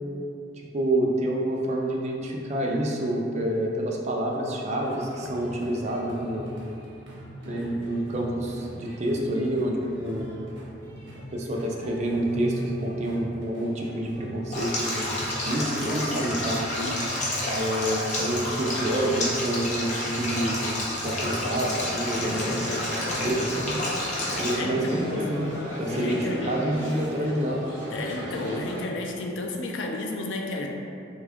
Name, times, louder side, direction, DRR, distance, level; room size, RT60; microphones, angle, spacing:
voice 1, 0.7-6.5 7.5-10.4 11.3-16.7 17.4-23.8 24.4-27.6, right 1 dB, 40° right, -1 dB, 0.4 m, -28 dB
sound 1, 4.8-23.5, equal, 80° right, 0.8 m, -41 dB
Stream, 14.5-24.5, left 1 dB, 40° left, 0.6 m, -30 dB
voice 2, 16.8-17.1 24.5-25.2 25.8-26.5 27.9-30.7, left 2 dB, 85° left, 1 dB, 0.4 m, -32 dB
sound 2, 21.2-28.8, equal, 15° left, 1.0 m, -35 dB
3.5 x 2.3 x 3.4 m, 2.6 s
head